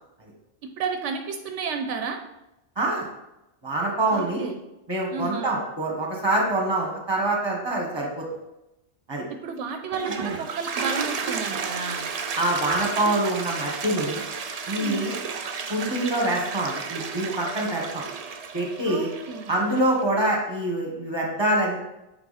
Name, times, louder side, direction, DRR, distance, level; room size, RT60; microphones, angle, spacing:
voice 1, 0.8-2.2 4.1-4.6 5.1-5.6 9.4-12.1 14.7-15.1 18.9-19.5, right 5 dB, 80° right, 5 dB, 0.9 m, -32 dB
voice 2, 2.8-3.1 3.6-4.4 4.9-8.3 9.1-9.2 10.2-10.4 12.4-14.2 14.7-15.1 15.7-18.0 18.5-19.1 19.5-21.8, right 1 dB, 20° right, -1 dB, 1.4 m, -25 dB
Toilet flush, 9.7-20.0, right 5 dB, 55° right, 0.4 m, -32 dB
7.0 x 3.8 x 4.1 m, 0.91 s
omnidirectional pair, 1.2 m